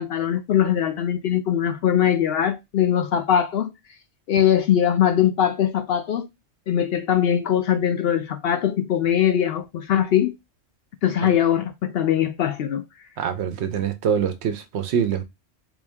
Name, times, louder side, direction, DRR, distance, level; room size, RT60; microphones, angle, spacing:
voice 1, 0.0-3.7 4.3-6.3 6.7-10.4 11.0-12.8, left 9 dB, 65° left, 0.7 m, -21 dB
voice 2, 13.2-15.2, right 8 dB, 70° right, 0.8 m, -24 dB
3.4 x 2.6 x 3.4 m
omnidirectional pair, 1.2 m